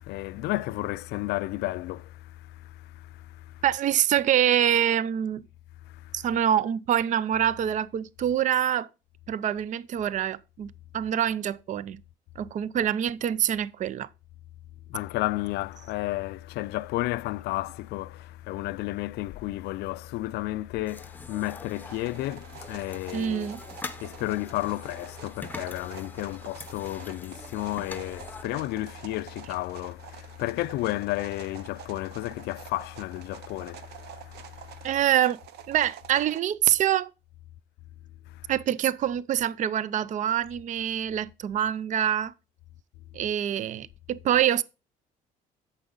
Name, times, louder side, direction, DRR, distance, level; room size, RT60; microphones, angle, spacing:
voice 1, 0.0-3.6 5.8-6.1 14.9-23.5 24.0-34.9 38.3-38.5, left 17 dB, 80° left, 0.4 m, -32 dB
voice 2, 3.6-5.4 6.1-8.9 9.3-12.0 12.4-14.1 23.1-23.6 34.8-35.4 35.7-37.1 38.5-42.3 43.1-44.6, right 10 dB, 45° right, 0.5 m, -25 dB
sound 1, 20.9-28.4, left 3 dB, 10° left, 0.8 m, -44 dB
sound 2, 21.7-36.4, right 10 dB, 75° right, 0.8 m, -47 dB
8.9 x 6.9 x 3.9 m
cardioid pair, 110°, 17 cm